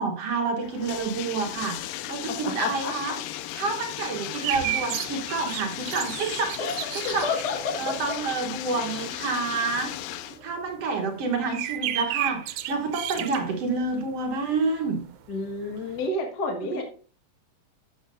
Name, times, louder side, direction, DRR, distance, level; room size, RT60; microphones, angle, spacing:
voice 1, 0.0-3.2 3.5-6.6 6.9-7.3 7.8-9.9 10.4-15.0 16.6-16.8, right 4 dB, 65° right, 3 dB, 1.6 m, -28 dB
Bathtub (filling or washing), 0.6-10.4, left 14 dB, 80° left, 2.1 m, -36 dB
voice 2, 2.3-3.1 6.6-6.8 7.0-7.9 15.3-16.8, left 3 dB, 55° left, 3 dB, 1.1 m, -30 dB
sound 1, 4.4-14.5 14.8-14.9 15.1-16.1, right 14 dB, 85° right, 2.6 m, -33 dB
13.0 x 7.5 x 2.6 m, 0.41 s
omnidirectional pair, 4.2 m